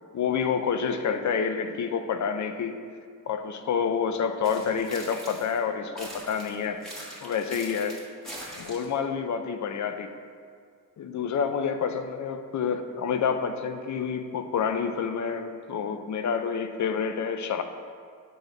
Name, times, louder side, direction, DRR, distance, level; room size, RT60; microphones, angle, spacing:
voice 1, 0.1-2.8 3.3-6.8 7.2-8.0 8.6-10.1 11.0-17.6, left 6 dB, 60° left, 8 dB, 0.6 m, -28 dB
sound 1, 4.4-5.6 6.0-9.0, right 1 dB, ahead, 1.5 m, -42 dB
8.6 x 3.3 x 6.3 m, 2.1 s
wide cardioid pair, 130°, 33 cm